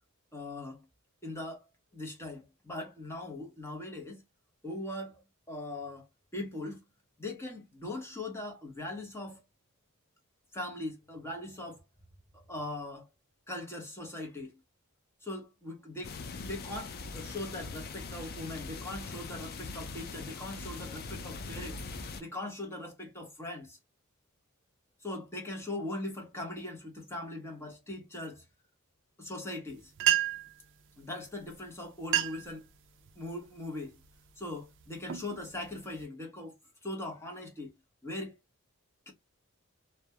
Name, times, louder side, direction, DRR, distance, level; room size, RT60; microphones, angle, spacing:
voice 1, 0.3-0.8 1.2-1.6 1.9-4.2 4.6-6.1 6.3-6.8 7.2-9.4 10.5-11.8 12.5-13.1 13.5-14.6 15.2-23.8 25.0-28.4 29.2-29.9 31.0-32.7 33.2-34.0 34.4-36.5 36.8-37.7 38.0-38.4 39.1-39.2, left 1 dB, 10° left, 0.7 m, -40 dB
sound 1, 16.0-22.2, left 4 dB, 45° left, 0.4 m, -42 dB
sound 2, 29.7-29.8 30.0-30.6 31.5-31.6 32.0-32.6 33.0-33.4 34.0-34.3 34.8-36.1, right 12 dB, 55° right, 0.3 m, -30 dB
2.3 x 2.1 x 2.7 m
head